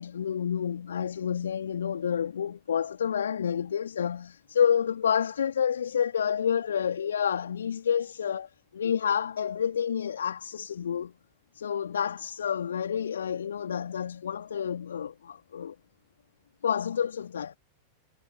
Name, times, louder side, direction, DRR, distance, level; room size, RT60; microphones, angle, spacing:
voice 1, 0.0-11.1 11.5-15.8 16.6-17.6, left 8 dB, 65° left, 2.8 m, -29 dB
figure-of-eight pair, 90°, 0 cm